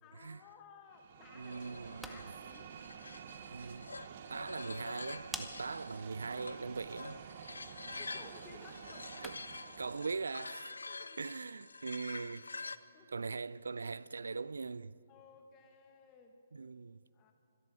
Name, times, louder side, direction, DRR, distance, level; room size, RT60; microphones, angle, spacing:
voice 1, 0.0-1.6 2.0-2.7 7.9-9.2 9.6-10.0 10.9-11.3 12.9-13.2 15.1-16.4 17.1-17.3, left 5 dB, 25° left, 1.4 m, -58 dB
sound 1, 0.9-10.7, right 8 dB, 45° right, 0.8 m, -50 dB
voice 2, 1.3-2.3 3.5-3.9 4.3-7.2 9.2-10.7 11.2-12.5 13.1-14.9 16.5-17.0, right 4 dB, 75° right, 0.3 m, -41 dB
sound 2, 1.4-12.8, left 3 dB, 80° left, 0.5 m, -48 dB
sound 3, 1.7-9.7, right 1 dB, ahead, 0.9 m, -53 dB
25.5 x 11.0 x 4.9 m
figure-of-eight pair, 140°, 0 cm